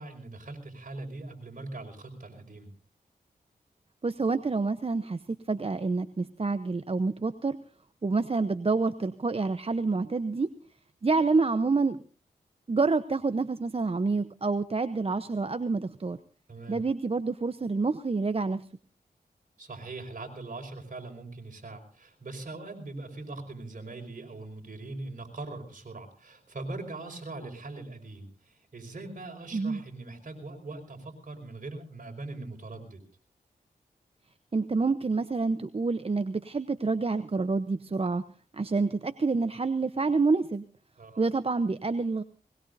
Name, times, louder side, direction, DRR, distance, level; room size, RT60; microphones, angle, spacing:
voice 1, 0.0-2.7 16.5-16.8 19.6-33.0 41.0-41.2, right 2 dB, 55° right, 3 dB, 5.0 m, -41 dB
voice 2, 4.0-7.6 8.0-10.5 11.0-12.0 12.7-16.2 16.7-18.7 29.5-29.8 34.5-38.2 38.5-40.6 41.2-42.2, right 3 dB, 35° right, 11 dB, 0.8 m, -28 dB
21.5 x 20.5 x 2.6 m, 0.42 s
cardioid pair, 55°, 16 cm